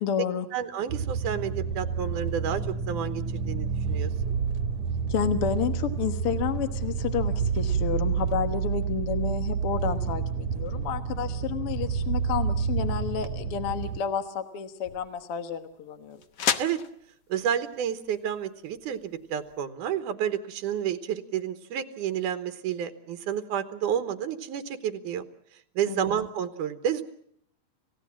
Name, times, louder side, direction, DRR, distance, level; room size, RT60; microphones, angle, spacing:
voice 1, 0.0-0.5 5.1-16.2 25.9-26.1, left 8 dB, 55° left, 8 dB, 2.0 m, -30 dB
voice 2, 0.5-4.4 16.6-16.8 17.3-25.3 25.8-27.0, right 9 dB, 85° right, 9 dB, 2.7 m, -30 dB
sound 1, 0.9-14.0, right 6 dB, 65° right, 2.1 m, -29 dB
sound 2, 13.7-19.6, left 8 dB, 90° left, 0.9 m, -36 dB
29.5 x 16.5 x 7.3 m, 0.68 s
omnidirectional pair, 3.6 m